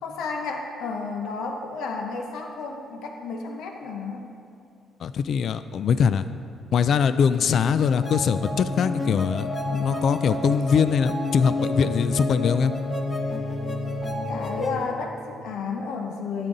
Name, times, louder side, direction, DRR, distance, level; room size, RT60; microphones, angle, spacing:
voice 1, 0.0-4.3 14.3-16.5, left 4 dB, 85° left, 3 dB, 0.8 m, -32 dB
voice 2, 5.0-6.3 6.7-12.7, left 6 dB, 65° left, 12 dB, 0.3 m, -22 dB
sound 1, 7.3-14.8, left 2 dB, 30° left, 1.2 m, -29 dB
12.0 x 9.1 x 3.9 m, 2.4 s
cardioid pair, 90°, 0 cm